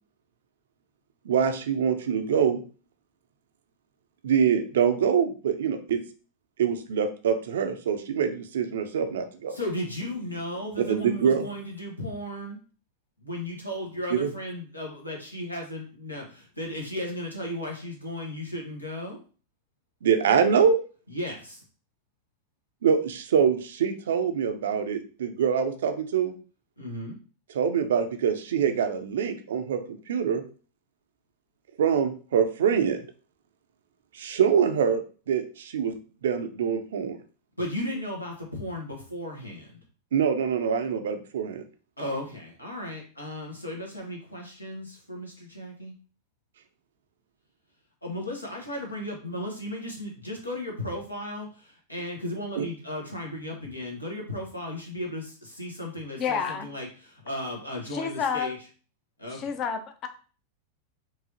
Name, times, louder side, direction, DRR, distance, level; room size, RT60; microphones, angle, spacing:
voice 1, 1.3-2.6 4.2-6.0 6.6-9.6 10.9-11.4 14.1-14.3 20.0-20.8 22.8-26.3 27.5-30.4 31.8-33.0 34.1-35.0 35.3-37.2 40.1-41.6 52.6-52.7, right 7 dB, 60° right, 8 dB, 0.5 m, -24 dB
voice 2, 9.5-12.6 13.2-19.2 21.1-21.6 26.8-27.2 37.6-39.8 42.0-45.9 48.0-58.6 59.2-59.4, left 1 dB, 85° left, -1 dB, 1.2 m, -35 dB
voice 3, 56.2-56.7 57.9-58.5 59.3-60.1, left 6 dB, 35° left, 8 dB, 0.6 m, -29 dB
4.7 x 2.7 x 2.8 m, 0.38 s
figure-of-eight pair, 90°, 0 cm